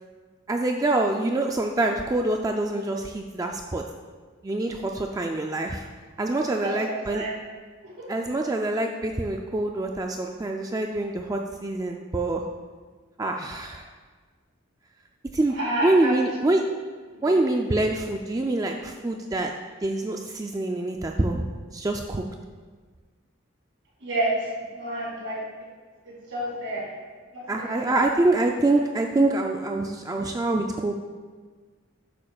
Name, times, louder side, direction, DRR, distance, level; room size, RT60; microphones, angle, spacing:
voice 1, 0.5-3.8 4.4-5.8 6.2-7.2 8.1-12.4 13.2-13.9 15.3-16.6 17.2-19.5 19.8-22.2 27.5-30.9, right 2 dB, 15° right, 2 dB, 0.3 m, -25 dB
voice 2, 6.5-7.3 7.8-8.1 15.5-16.6 17.1-17.4 24.0-25.4 26.0-26.9 27.3-28.1, right 1 dB, 60° right, -4 dB, 2.8 m, -30 dB
12.5 x 8.7 x 2.3 m, 1.5 s
head